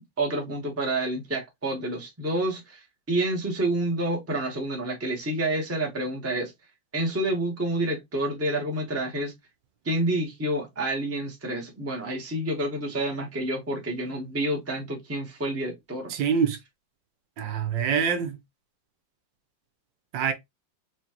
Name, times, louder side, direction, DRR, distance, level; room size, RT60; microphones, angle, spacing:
voice 1, 0.2-6.5 6.9-9.3 9.8-16.1, right 1 dB, 10° right, 0.8 m, -28 dB
voice 2, 16.1-16.6 17.4-18.4 20.1-20.3, right 7 dB, 80° right, 1.4 m, -25 dB
4.8 x 2.6 x 2.9 m
omnidirectional pair, 2.1 m